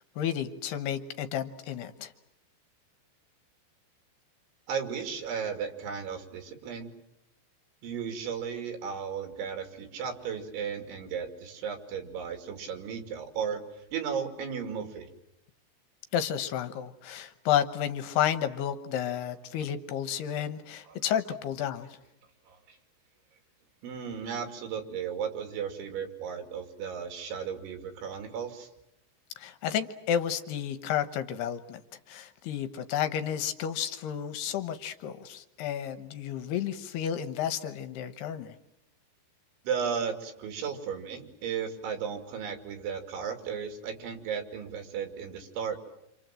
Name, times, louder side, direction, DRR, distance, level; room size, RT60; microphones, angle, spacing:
voice 1, 0.2-2.1 16.1-21.9 29.4-31.8 32.1-38.5, left 9 dB, 70° left, 10 dB, 2.9 m, -31 dB
voice 2, 4.7-6.9 7.8-13.6 13.9-15.1 20.9-21.0 22.5-22.8 23.8-28.7 39.6-45.8, right 7 dB, 85° right, 6 dB, 5.0 m, -35 dB
28.0 x 27.0 x 7.7 m, 0.85 s
omnidirectional pair, 5.2 m